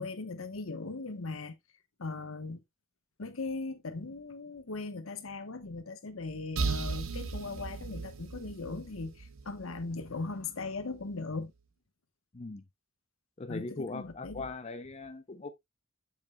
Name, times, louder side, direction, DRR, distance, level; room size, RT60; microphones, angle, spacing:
voice 1, 0.0-1.6 2.0-2.6 3.2-11.5 13.5-14.5, left 3 dB, 80° left, 1.1 m, -39 dB
sound 1, 6.6-10.2, right 4 dB, 80° right, 0.9 m, -36 dB
voice 2, 13.4-15.5, left 3 dB, 30° left, 0.6 m, -40 dB
7.5 x 7.4 x 2.3 m
head